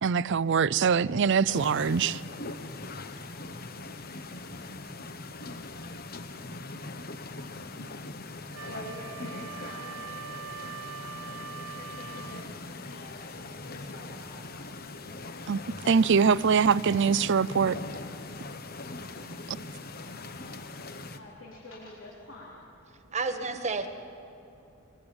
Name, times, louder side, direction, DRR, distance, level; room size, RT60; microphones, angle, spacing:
voice 1, 0.0-2.2 15.5-15.6 15.9-17.8, right 6 dB, 55° right, 0.5 m, -23 dB
sound 1, 1.5-21.2, left 2 dB, 45° left, 1.2 m, -41 dB
Wind instrument woodwind instrument, 8.5-12.5, right 9 dB, 85° right, 0.8 m, -43 dB
voice 2, 8.7-10.7 11.1-12.5 12.8-14.5 19.9-20.0 20.4-20.6 21.1-22.6, left 1 dB, 65° left, 3.8 m, -47 dB
voice 3, 23.1-23.9, right 4 dB, 35° right, 1.6 m, -30 dB
22.5 x 22.0 x 8.9 m
head